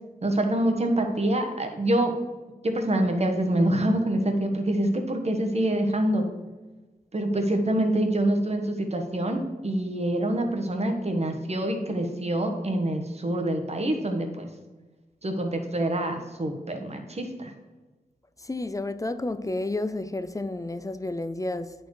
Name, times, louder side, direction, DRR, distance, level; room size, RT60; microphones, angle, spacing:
voice 1, 0.2-2.2 2.6-6.3 7.1-14.5 15.2-17.5, right 1 dB, 40° right, 1.2 m, -26 dB
voice 2, 18.4-21.7, left 2 dB, 20° left, 0.4 m, -31 dB
10.0 x 4.6 x 4.7 m
wide cardioid pair, 105°, 16 cm